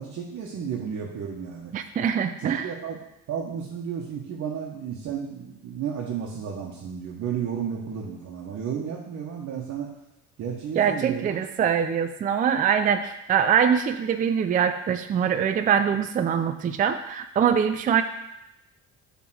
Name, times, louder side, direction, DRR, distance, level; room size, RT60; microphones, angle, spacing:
voice 1, 0.0-1.7 2.4-3.0 3.3-9.9 10.4-11.3, right 7 dB, 55° right, -3 dB, 1.2 m, -33 dB
voice 2, 1.7-2.7 10.8-18.0, right 8 dB, 25° right, 8 dB, 0.4 m, -23 dB
7.5 x 3.6 x 6.2 m, 0.89 s
cardioid pair, 110°, 31 cm